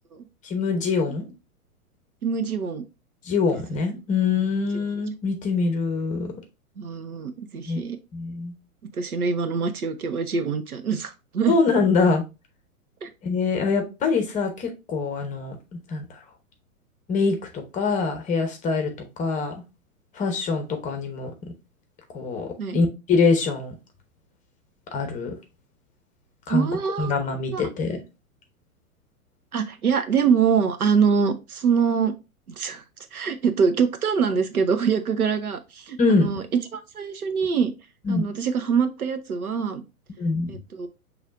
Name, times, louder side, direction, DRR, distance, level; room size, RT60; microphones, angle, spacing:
voice 1, 0.4-1.2 3.2-6.3 7.7-7.8 8.1-8.5 11.5-12.2 13.2-16.2 17.1-18.9 19.2-19.5 20.1-21.3 22.1-23.7 24.9-25.3 26.5-26.7 27.0-28.0 36.0-36.3 38.0-38.2 40.2-40.5, left 4 dB, 15° left, 5 dB, 0.9 m, -24 dB
voice 2, 2.2-2.9 4.7-4.8 6.8-8.0 8.9-11.6 13.0-13.1 22.6-22.8 26.5-27.1 27.5-27.6 29.5-32.1 32.6-32.8 33.1-37.7 38.1-39.8 40.5-40.9, right 6 dB, 75° right, 9 dB, 0.8 m, -24 dB
6.3 x 3.2 x 2.5 m, 0.27 s
figure-of-eight pair, 105°, 43 cm